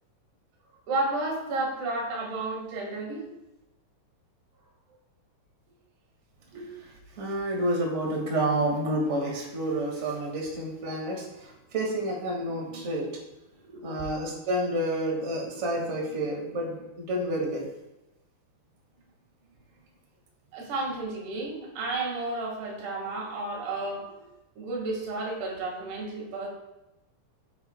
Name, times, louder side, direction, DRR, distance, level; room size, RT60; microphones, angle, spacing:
voice 1, 0.9-3.2 6.5-6.7 13.6-13.9 20.5-24.1 24.6-26.5, right 2 dB, 75° right, -2 dB, 4.1 m, -32 dB
voice 2, 7.1-13.1 13.8-17.6, right 1 dB, 30° right, -1 dB, 1.3 m, -29 dB
15.0 x 7.8 x 2.4 m, 0.95 s
omnidirectional pair, 4.7 m